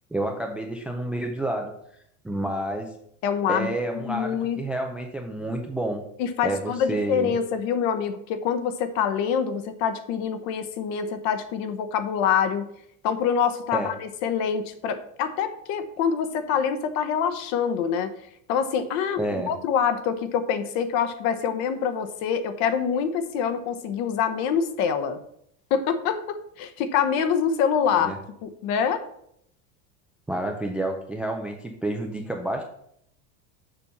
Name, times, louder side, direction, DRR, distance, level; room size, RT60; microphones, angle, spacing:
voice 1, 0.1-1.7 2.2-2.9 3.5-6.0 6.4-7.3 13.7-13.9 19.2-19.5 28.0-28.2 30.3-32.6, right 1 dB, 5° right, 3 dB, 0.3 m, -29 dB
voice 2, 3.2-3.7 4.0-4.6 6.2-12.7 13.0-18.1 18.5-25.2 25.7-28.1 28.4-29.0, left 7 dB, 50° left, 10 dB, 1.0 m, -25 dB
6.9 x 5.3 x 7.1 m, 0.72 s
cardioid pair, 165°, 35 cm